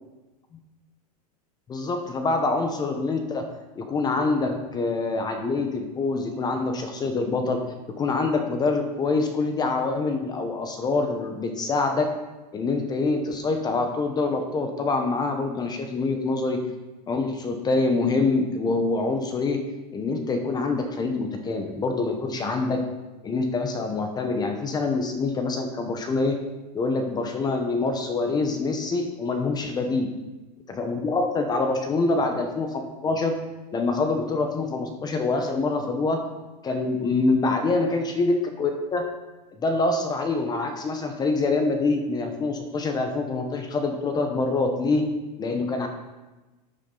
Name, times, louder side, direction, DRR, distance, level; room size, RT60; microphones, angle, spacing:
voice 1, 1.7-3.5 3.8-12.1 12.5-16.6 17.1-19.6 19.9-22.8 23.2-26.4 26.7-30.1 30.7-33.4 33.7-36.2 36.6-39.1 39.6-45.1 45.4-45.9, left 3 dB, 20° left, 5 dB, 0.9 m, -25 dB
9.9 x 9.6 x 3.9 m, 1.1 s
supercardioid pair, 140°, 20 cm